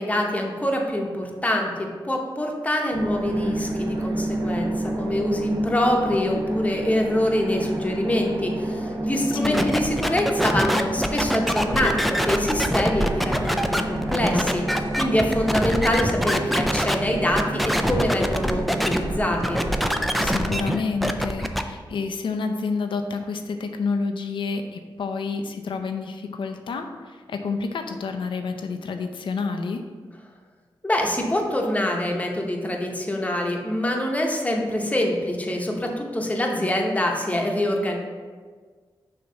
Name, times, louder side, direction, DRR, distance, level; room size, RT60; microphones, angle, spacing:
voice 1, 0.0-19.6 30.8-38.0, left 1 dB, 15° left, 1 dB, 0.9 m, -25 dB
sound 1, 2.9-20.8, right 1 dB, 75° right, 0.9 m, -30 dB
voice 2, 9.3-9.8 20.2-29.8, left 4 dB, 75° left, 6 dB, 0.6 m, -29 dB
sound 2, 9.4-16.9 17.3-19.0 19.3-21.6, equal, ahead, 0.4 m, -24 dB
sound 3, 11.5-20.6, right 1 dB, 35° right, 0.8 m, -36 dB
6.5 x 2.9 x 5.5 m, 1.5 s
wide cardioid pair, 95°, 8 cm